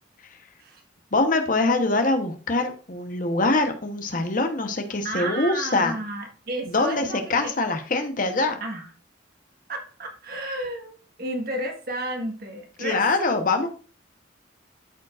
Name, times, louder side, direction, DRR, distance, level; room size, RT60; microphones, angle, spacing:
voice 1, 1.1-6.0 6.7-8.6 12.8-13.7, left 3 dB, 45° left, 6 dB, 1.0 m, -24 dB
voice 2, 5.0-7.5 8.6-8.9 9.7-13.4, right 1 dB, 50° right, 3 dB, 1.5 m, -32 dB
12.5 x 5.2 x 2.5 m, 0.38 s
head